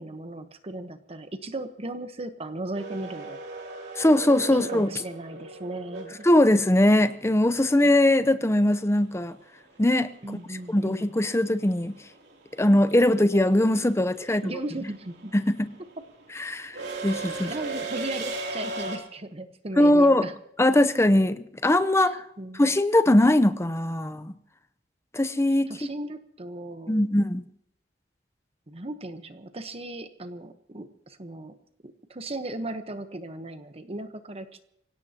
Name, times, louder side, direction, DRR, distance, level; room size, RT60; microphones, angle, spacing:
voice 1, 0.0-3.4 4.5-6.3 7.8-7.9 10.2-11.1 14.2-15.3 17.5-20.3 22.0-22.7 25.7-27.0 28.7-31.6 31.8-34.7, right 2 dB, 35° right, 1.1 m, -37 dB
sound 1, 2.7-6.8 9.2-9.3 10.6-10.9 11.2-19.0, right 3 dB, 65° right, 3.1 m, -36 dB
voice 2, 4.0-4.9 6.2-9.4 9.8-10.1 10.7-12.0 12.6-14.4 15.3-15.7 16.4-16.8 17.0-17.5 19.8-20.2 20.6-22.2 22.6-24.3 25.1-25.9 26.9-27.5, left 1 dB, 15° left, 0.7 m, -21 dB
25.5 x 17.0 x 2.9 m
head